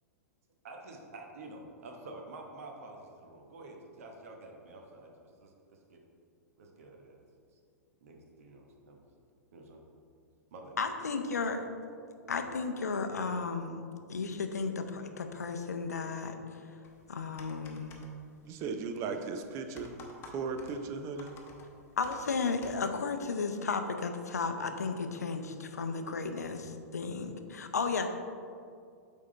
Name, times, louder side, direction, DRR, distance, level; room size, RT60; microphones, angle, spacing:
voice 1, 0.6-6.0 6.6-7.2 7.5-7.6 8.0-9.1 9.5-9.8 10.5-10.8, right 2 dB, 55° right, 2 dB, 1.0 m, -49 dB
voice 2, 10.8-11.7 12.3-13.8 14.1-16.4 17.1-18.0 22.0-28.1, left 4 dB, 75° left, 6 dB, 0.5 m, -34 dB
sound 1, 16.8-22.8, left 3 dB, 25° left, 0.8 m, -54 dB
voice 3, 18.5-19.9 20.3-21.4, right 4 dB, 35° right, 7 dB, 0.6 m, -36 dB
8.4 x 3.7 x 3.8 m, 2.3 s
figure-of-eight pair, 100°, 9 cm